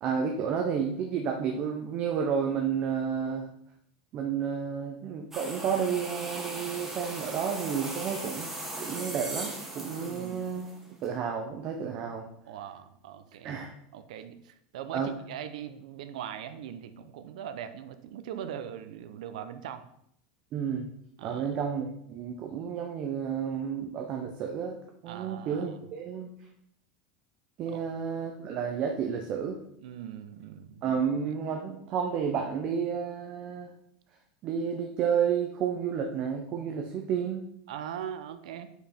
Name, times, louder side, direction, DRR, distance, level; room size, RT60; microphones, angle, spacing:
voice 1, 0.0-3.5 4.1-8.5 8.8-10.8 11.0-12.3 13.4-13.7 14.9-15.1 20.5-20.9 21.2-24.8 25.0-26.3 27.6-29.6 30.8-33.7 34.4-37.4, right 7 dB, 30° right, 2 dB, 0.6 m, -31 dB
sound 1, 5.3-11.1, right 1 dB, 10° right, 0.9 m, -38 dB
voice 2, 10.0-10.5 12.5-13.6 13.9-19.9 21.2-21.6 25.1-25.8 27.7-27.9 29.8-30.8 37.7-38.7, right 9 dB, 80° right, 10 dB, 0.6 m, -41 dB
5.2 x 4.8 x 4.3 m, 0.73 s
supercardioid pair, 175°, 4 cm